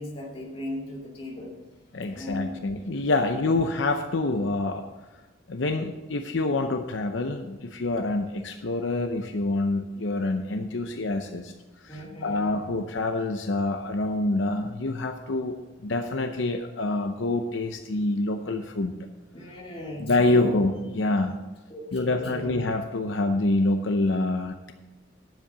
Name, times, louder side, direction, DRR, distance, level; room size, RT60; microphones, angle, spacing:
voice 1, 0.0-1.5 2.1-2.7 3.2-3.3 11.9-12.6 19.3-20.6 21.7-22.6, left 1 dB, 30° left, -2 dB, 2.4 m, -37 dB
voice 2, 1.9-4.8 5.5-11.5 11.8-15.5 15.8-18.9 20.0-21.3 21.9-24.7, left 2 dB, 75° left, 6 dB, 0.7 m, -26 dB
10.0 x 7.5 x 6.8 m, 1.2 s
head